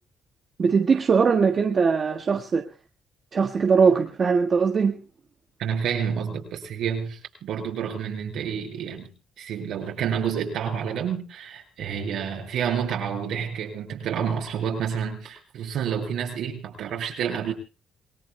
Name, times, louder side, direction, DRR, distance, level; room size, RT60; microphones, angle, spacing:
voice 1, 0.6-2.6 3.3-4.9, right 5 dB, 45° right, 1.5 m, -20 dB
voice 2, 5.6-9.1 9.4-17.5, right 7 dB, 80° right, 6.4 m, -29 dB
28.0 x 19.5 x 2.2 m
cardioid pair, 90°, 0 cm